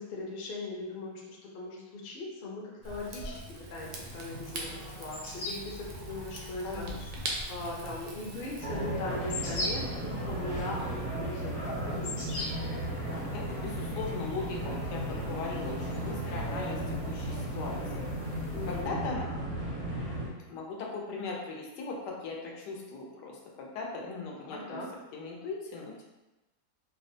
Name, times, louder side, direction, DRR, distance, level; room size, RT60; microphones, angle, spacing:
voice 1, 0.0-5.2 5.4-6.8 7.5-12.4 18.5-19.0 24.4-24.9, left 2 dB, 50° left, -3 dB, 0.6 m, -40 dB
Rain / Fire, 2.8-8.7, right 1 dB, 75° right, 1.1 m, -41 dB
sound 1, 3.8-18.8, left 2 dB, 70° left, 1.4 m, -44 dB
voice 2, 6.6-7.2 13.3-19.3 20.5-24.8 25.1-26.0, left 3 dB, 85° left, -1 dB, 1.3 m, -39 dB
sound 2, 8.6-20.3, right 1 dB, 50° right, 0.4 m, -35 dB
4.6 x 2.0 x 2.6 m, 1.0 s
omnidirectional pair, 1.7 m